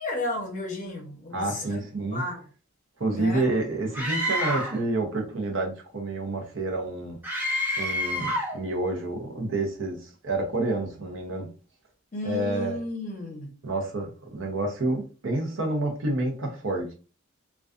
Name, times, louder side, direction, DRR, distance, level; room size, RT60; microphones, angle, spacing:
voice 1, 0.0-1.8 2.1-2.5 3.1-3.4 12.1-13.5, left 2 dB, 35° left, 0.7 m, -33 dB
voice 2, 1.3-2.2 3.0-7.2 7.8-11.5 12.2-12.8 13.6-16.9, right 2 dB, 60° right, 0.7 m, -29 dB
Screaming, 3.9-4.8 7.2-8.6, equal, 10° right, 0.5 m, -28 dB
2.3 x 2.3 x 2.4 m
head